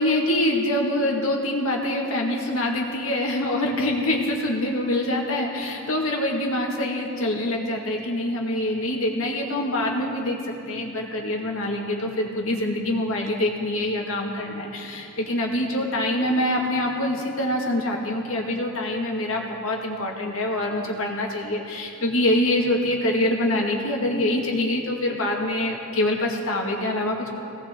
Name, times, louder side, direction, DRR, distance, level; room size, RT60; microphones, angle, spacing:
voice 1, 0.0-10.4 10.7-27.3, left 1 dB, 75° left, 0 dB, 2.0 m, -25 dB
19.0 x 17.5 x 3.8 m, 2.8 s
head